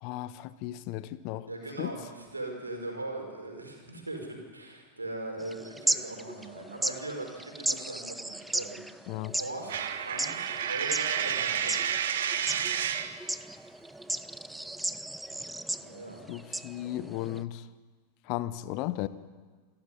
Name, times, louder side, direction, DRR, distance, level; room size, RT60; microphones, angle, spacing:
voice 1, 0.0-1.5 1.8-1.9 9.1-9.3 16.3-17.6 18.3-19.1, left 15 dB, 45° left, 14 dB, 1.0 m, -35 dB
voice 2, 1.5-11.8 15.8-16.2, right 2 dB, 80° right, 2 dB, 5.2 m, -40 dB
sound 1, 5.4-17.4, right 1 dB, 5° right, 0.7 m, -36 dB
Coin (dropping), 9.7-13.2, right 9 dB, 60° right, 1.4 m, -30 dB
26.5 x 13.5 x 9.9 m, 1.5 s
figure-of-eight pair, 90°, 0 cm